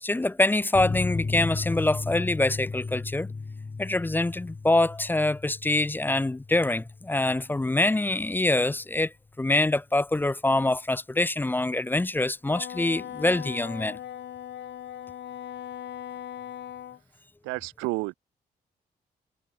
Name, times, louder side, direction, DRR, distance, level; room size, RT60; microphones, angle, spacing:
voice 1, 0.0-3.3 3.8-9.1 9.4-14.0, left 2 dB, 10° left, 0.3 m, -25 dB
sound 1, 0.7-7.9 8.1-8.2 8.5-8.6, left 4 dB, 30° left, 2.3 m, -35 dB
Wind instrument woodwind instrument, 12.4-17.0, left 10 dB, 60° left, 0.9 m, -39 dB
voice 2, 17.4-18.1, right 25 dB, 85° right, 1.5 m, -30 dB
hypercardioid pair, 40°, 20 cm